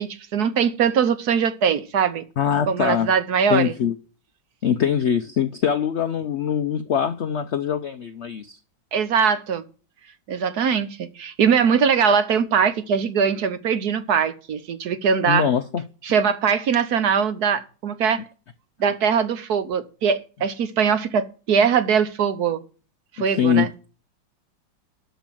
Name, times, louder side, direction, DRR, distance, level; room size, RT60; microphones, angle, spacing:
voice 1, 0.0-2.2 2.7-3.7 8.9-9.6 10.3-15.5 16.0-18.2 18.8-22.6 23.2-23.7, right 6 dB, 65° right, 1.4 m, -21 dB
voice 2, 2.4-3.1 3.5-4.0 4.6-8.6 15.3-15.8 23.4-23.7, left 8 dB, 70° left, 0.6 m, -22 dB
12.5 x 5.2 x 7.5 m
omnidirectional pair, 1.9 m